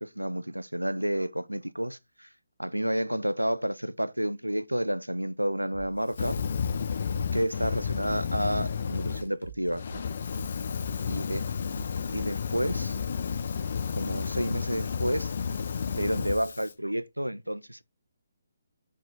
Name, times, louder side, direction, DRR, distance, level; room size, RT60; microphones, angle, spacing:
voice 1, 0.0-2.3 2.6-6.4 7.3-9.8 11.1-11.4 12.1-13.0 13.9-15.3 15.9-17.8, equal, 90° right, 0.4 m, -30 dB
sound 1, 5.7-12.9, right 4 dB, 80° left, 1.7 m, -46 dB
Fire, 6.1-9.2 9.7-16.7, left 6 dB, 50° left, 0.6 m, -31 dB
6.0 x 4.5 x 4.1 m
figure-of-eight pair, 140°, 0 cm